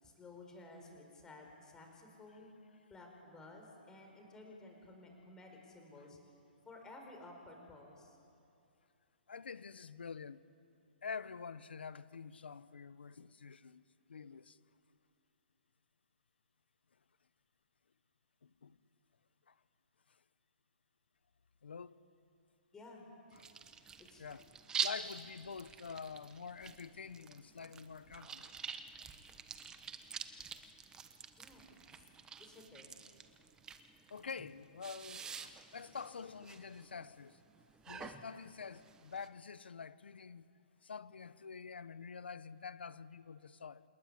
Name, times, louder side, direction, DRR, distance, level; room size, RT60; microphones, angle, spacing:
voice 1, 0.0-2.5 2.9-6.2 6.6-8.2 22.7-23.1 24.0-24.4 31.4-32.0 32.4-33.0, left 2 dB, 10° left, 5.0 m, -55 dB
voice 2, 9.3-10.4 11.0-13.8 14.1-14.6 18.4-18.8 19.5-19.6 20.1-20.2 21.6-22.0 23.3-23.4 24.2-24.4 24.8-28.5 29.3-29.4 34.1-37.4 37.9-40.5 40.8-43.8, left 5 dB, 85° left, 1.1 m, -47 dB
sound 1, 23.3-39.3, right 6 dB, 10° right, 1.1 m, -47 dB
27.5 x 19.5 x 10.0 m
hypercardioid pair, 150°, 6 cm